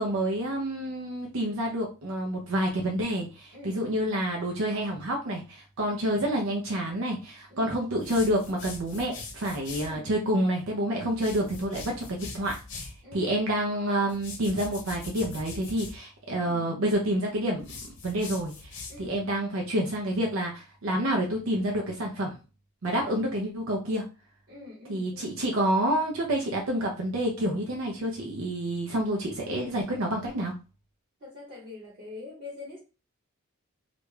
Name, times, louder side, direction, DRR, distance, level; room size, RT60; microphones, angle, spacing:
voice 1, 0.0-17.7 18.0-22.4 22.8-24.1 24.9-30.5, right 1 dB, 65° right, 0.5 m, -28 dB
voice 2, 3.5-3.8 5.8-6.1 7.5-7.8 9.8-10.1 13.0-13.3 16.3-16.7 18.9-19.2 23.0-23.3 24.5-25.5 31.2-32.8, left 3 dB, 45° right, 0.9 m, -44 dB
sound 1, 8.0-10.0 11.1-13.0 14.1-16.0 17.6-19.2, left 3 dB, 55° left, 0.8 m, -42 dB
2.4 x 2.2 x 3.1 m
head